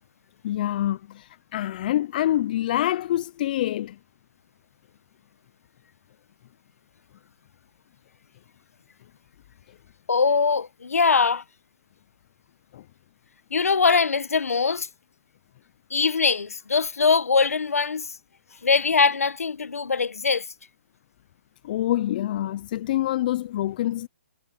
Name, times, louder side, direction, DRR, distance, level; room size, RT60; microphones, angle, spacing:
voice 1, 0.4-4.0 12.7-12.8 21.6-24.1, left 13 dB, 35° left, 0.7 m, -26 dB
voice 2, 10.1-11.4 13.5-14.9 15.9-18.1 18.6-20.5, left 5 dB, 80° left, 1.3 m, -22 dB
hypercardioid pair, 150°, 8 cm